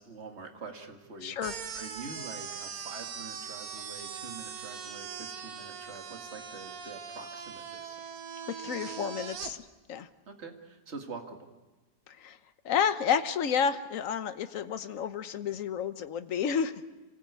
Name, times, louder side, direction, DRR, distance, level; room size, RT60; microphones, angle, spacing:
voice 1, 0.0-8.2 10.3-11.5, right 4 dB, 40° right, 4 dB, 2.2 m, -45 dB
voice 2, 1.2-1.5 8.5-10.1 12.1-12.4 12.6-16.7, left 7 dB, 55° left, 10 dB, 1.3 m, -31 dB
sound 1, 1.4-9.5, right 7 dB, 60° right, 1.5 m, -41 dB
27.0 x 19.0 x 8.3 m, 1.2 s
omnidirectional pair, 1.8 m